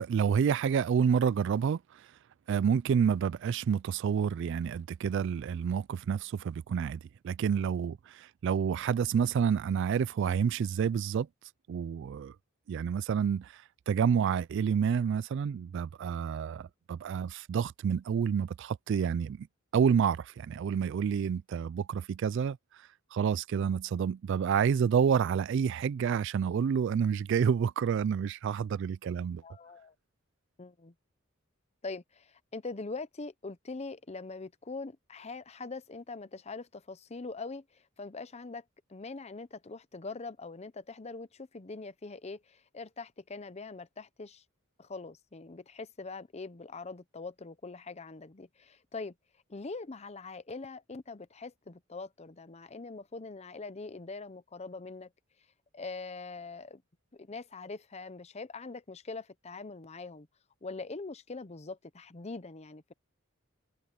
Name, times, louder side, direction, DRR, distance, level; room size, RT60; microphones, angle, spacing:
voice 1, 0.0-1.8 2.5-11.3 11.7-12.3 12.7-13.5 13.9-19.5 19.7-22.6 23.1-29.4, right 7 dB, 60° right, 0.3 m, -29 dB
voice 2, 29.4-29.9 30.6-30.9 31.8-38.6 38.9-44.4 44.8-49.1 49.5-55.1 55.7-56.8 57.1-60.3 60.6-62.9, left 3 dB, 30° left, 0.7 m, -43 dB
head